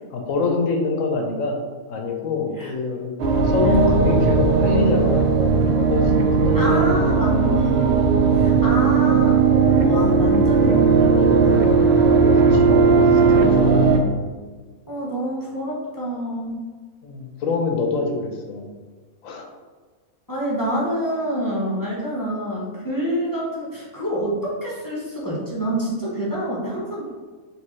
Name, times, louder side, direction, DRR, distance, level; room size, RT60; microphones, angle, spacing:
voice 1, 0.1-1.6 1.9-3.1 3.4-7.4 8.3-8.5 12.3-13.9 17.0-18.7 19.2-19.5, left 4 dB, 70° left, 2 dB, 1.0 m, -25 dB
sound 1, 3.2-14.0, right 5 dB, 75° right, 0.5 m, -17 dB
voice 2, 6.5-9.4 9.8-12.2 14.9-16.6 20.3-27.1, equal, 20° left, -5 dB, 0.7 m, -27 dB
4.4 x 3.4 x 3.1 m, 1.4 s
omnidirectional pair, 1.5 m